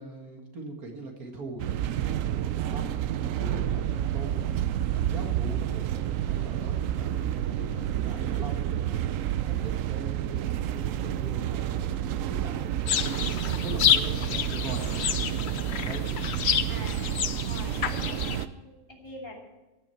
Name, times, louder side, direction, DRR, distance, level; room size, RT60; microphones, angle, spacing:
voice 1, 0.0-15.1 15.4-16.1, right 2 dB, 90° right, 3 dB, 2.4 m, -42 dB
sound 1, 1.6-18.5, right 11 dB, 70° right, 0.9 m, -29 dB
sound 2, 12.9-18.4, left 8 dB, 55° left, 0.9 m, -29 dB
voice 2, 16.7-17.0 17.4-19.4, equal, 20° left, -1 dB, 2.9 m, -43 dB
14.5 x 11.5 x 4.5 m, 1.1 s
omnidirectional pair, 1.5 m